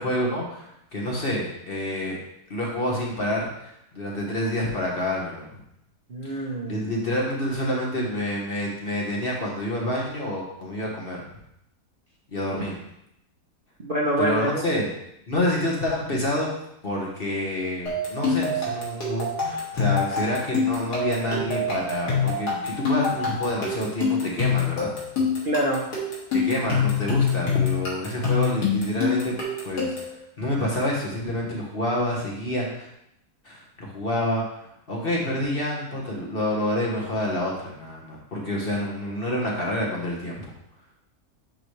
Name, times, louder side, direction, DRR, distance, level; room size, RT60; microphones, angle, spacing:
voice 1, 0.0-2.2 2.5-5.5 6.2-11.2 12.3-12.8 14.2-14.9 15.3-16.5 16.8-24.9 26.3-29.3 29.6-30.0 30.4-32.9 33.4-40.4, left 1 dB, 40° left, -2 dB, 1.4 m, -28 dB
voice 2, 6.1-6.8 12.5-12.6 13.8-14.6 25.4-25.8, right 1 dB, 40° right, -3 dB, 0.9 m, -25 dB
sound 1, 17.9-30.2, left 5 dB, 85° left, 2.4 m, -26 dB
10.5 x 4.0 x 3.2 m, 0.79 s
omnidirectional pair, 1.7 m